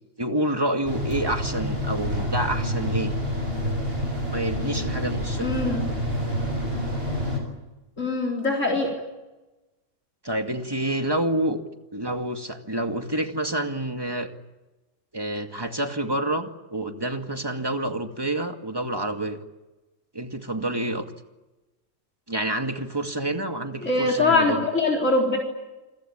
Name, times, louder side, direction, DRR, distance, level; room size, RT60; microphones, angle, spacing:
voice 1, 0.2-3.1 4.3-5.5 10.2-11.6 11.9-14.3 15.1-19.4 20.1-21.1 22.3-24.6, right 1 dB, 20° right, 5 dB, 2.3 m, -28 dB
sound 1, 0.9-7.4, equal, 50° right, 7.5 m, -28 dB
voice 2, 5.4-5.9 8.0-8.9 23.8-25.4, left 3 dB, 75° left, -1 dB, 4.4 m, -22 dB
28.0 x 22.5 x 8.9 m, 1.1 s
omnidirectional pair, 1.3 m